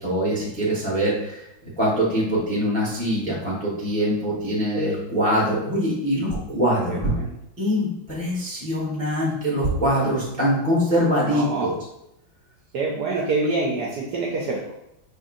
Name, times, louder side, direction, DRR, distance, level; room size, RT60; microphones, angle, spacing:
voice 1, 0.0-1.4 1.8-7.1 7.6-11.7, equal, 5° left, -6 dB, 0.6 m, -23 dB
voice 2, 6.9-7.3 11.3-11.7 12.7-14.7, right 3 dB, 70° right, -2 dB, 1.0 m, -26 dB
5.2 x 2.6 x 2.5 m, 0.83 s
omnidirectional pair, 2.2 m